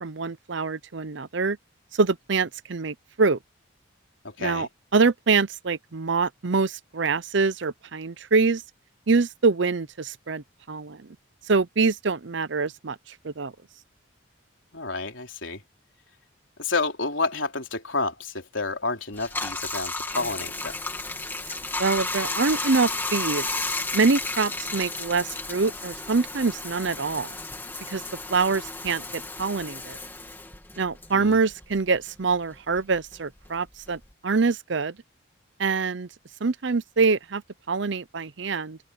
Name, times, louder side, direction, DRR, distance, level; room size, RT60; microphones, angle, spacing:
voice 1, 0.0-1.6 2.0-3.4 4.4-8.6 9.1-11.0 11.5-13.0 13.2-13.5 21.8-23.5 23.9-27.3 27.9-28.0 28.3-30.0 30.8-35.0 35.6-36.1 36.4-37.4 37.7-38.8, right 4 dB, 60° right, 0.7 m, -25 dB
voice 2, 4.2-4.7 14.7-15.6 16.6-20.8 31.1-31.4, left 3 dB, 70° left, 3.7 m, -30 dB
Bathtub (filling or washing), 19.1-32.0 32.3-34.1, left 3 dB, 10° left, 2.1 m, -33 dB
open air
head